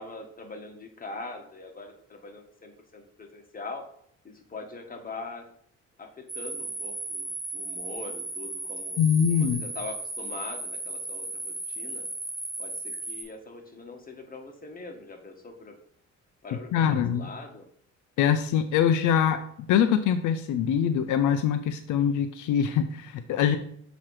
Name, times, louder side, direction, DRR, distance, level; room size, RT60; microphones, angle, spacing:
voice 1, 0.0-3.8 4.2-5.4 6.0-9.0 9.4-12.1 12.6-15.7 16.4-17.7, left 3 dB, 30° left, 3 dB, 1.4 m, -42 dB
sound 1, 6.3-13.2, right 2 dB, 25° right, 2.0 m, -36 dB
voice 2, 9.0-9.7 16.7-17.3 18.2-19.4 19.7-23.6, left 8 dB, 80° left, 9 dB, 0.5 m, -23 dB
7.4 x 3.0 x 4.8 m, 0.64 s
cardioid pair, 90°, 30 cm